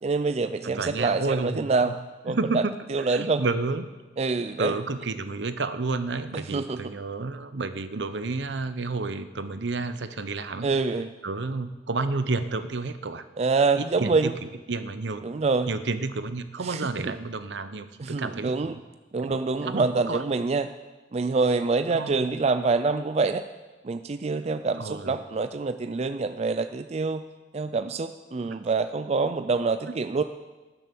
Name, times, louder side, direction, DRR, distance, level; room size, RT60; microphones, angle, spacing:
voice 1, 0.0-2.0 2.2-2.6 2.9-3.4 4.2-4.8 6.3-6.8 10.6-11.1 13.4-14.4 15.2-15.7 16.6-17.1 18.0-18.8 19.1-20.7 21.1-23.4 23.8-27.2 27.5-30.2, right 4 dB, 35° right, 10 dB, 0.4 m, -26 dB
voice 2, 0.6-1.9 2.3-2.7 3.1-3.9 4.6-10.7 11.2-13.2 13.8-15.2 15.7-18.7 19.2-19.4 19.7-20.2 21.9-22.3 24.8-25.1 28.4-28.6, right 3 dB, 70° right, 11 dB, 0.8 m, -30 dB
19.5 x 7.0 x 6.0 m, 1.2 s
head